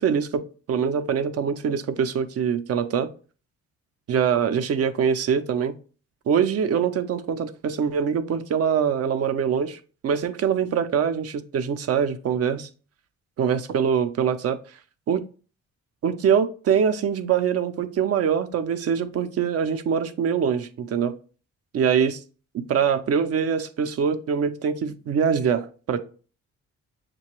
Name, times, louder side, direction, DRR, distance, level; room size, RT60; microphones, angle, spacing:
voice 1, 0.0-3.1 4.1-5.7 6.3-12.7 13.4-14.6 15.1-15.2 16.0-21.1 21.7-22.2 22.5-26.0, right 7 dB, 55° right, 0.5 m, -23 dB
6.5 x 2.2 x 2.9 m
cardioid pair, 90°, 30 cm